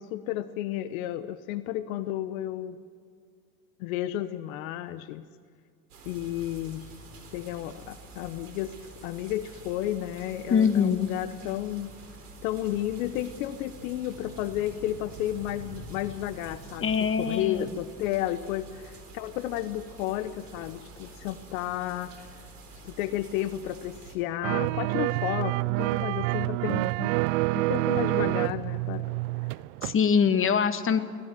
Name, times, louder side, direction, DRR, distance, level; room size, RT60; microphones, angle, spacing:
voice 1, 0.0-2.8 3.8-5.3 6.1-6.9 7.3-8.7 9.0-11.9 12.4-22.2 22.8-27.1 27.5-29.1, left 13 dB, 65° left, 13 dB, 1.1 m, -32 dB
sound 1, 5.9-24.2, right 2 dB, 85° right, 4.2 m, -47 dB
voice 2, 10.5-11.1 16.8-17.6 29.8-31.0, left 6 dB, 30° left, 10 dB, 1.7 m, -23 dB
sound 2, 24.4-30.0 30.3-30.4, right 21 dB, 60° right, 0.6 m, -27 dB
25.0 x 17.5 x 7.5 m, 2.1 s
hypercardioid pair, 85°, 44 cm